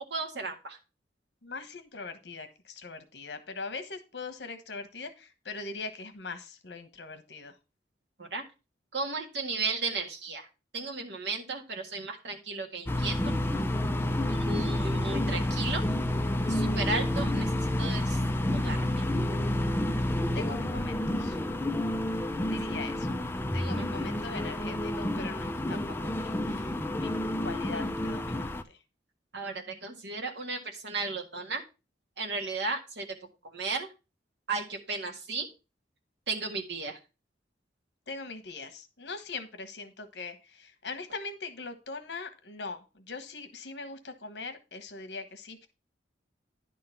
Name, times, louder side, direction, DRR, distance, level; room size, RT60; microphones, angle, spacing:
voice 1, 0.1-0.8 8.2-8.4 8.9-10.5 10.7-13.1 14.3-15.8 16.5-18.2 18.5-19.0 22.7-22.8 23.6-23.9 29.3-31.6 32.2-33.1 33.4-33.9 34.5-35.5 36.3-37.0, right 3 dB, 70° right, 1.7 m, -34 dB
voice 2, 1.4-7.6 20.3-21.4 22.5-23.2 23.5-27.1 27.4-28.8 38.1-45.7, left 4 dB, 70° left, 1.2 m, -41 dB
sound 1, 12.9-28.6, left 1 dB, 15° left, 0.5 m, -29 dB
10.5 x 3.8 x 5.6 m
head